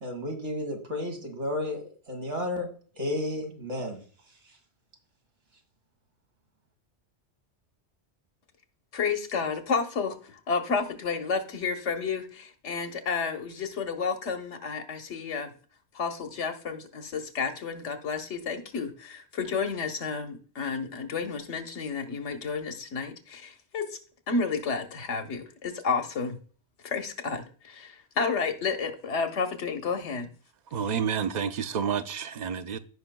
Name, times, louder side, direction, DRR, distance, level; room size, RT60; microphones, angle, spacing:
voice 1, 0.0-2.7 3.0-4.0, left 1 dB, 85° right, 2.1 m, -32 dB
voice 2, 8.9-15.5 15.9-24.0 24.3-26.4 26.8-30.3, left 5 dB, 90° left, 1.3 m, -31 dB
voice 3, 30.7-32.8, right 7 dB, 50° right, 0.6 m, -29 dB
15.5 x 5.4 x 2.2 m
omnidirectional pair, 1.2 m